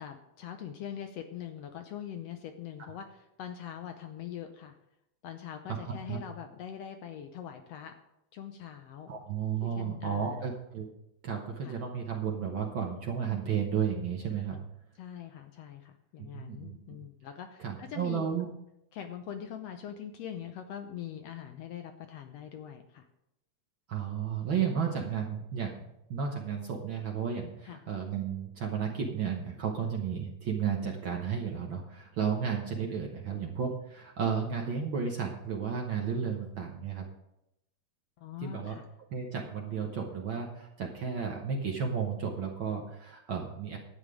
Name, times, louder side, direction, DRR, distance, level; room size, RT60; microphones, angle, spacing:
voice 1, 0.0-4.7 5.2-7.9 8.3-9.1 9.6-10.5 11.6-11.8 15.0-18.5 18.9-23.1 27.6-27.8 38.2-38.8, left 9 dB, 75° left, 6 dB, 1.6 m, -43 dB
voice 2, 9.1-10.8 11.2-14.6 16.3-17.0 17.6-18.5 23.9-25.7 26.1-37.0 38.4-38.7 39.1-43.8, right 7 dB, 55° right, 0 dB, 1.4 m, -33 dB
11.5 x 8.9 x 4.9 m, 0.86 s
omnidirectional pair, 3.4 m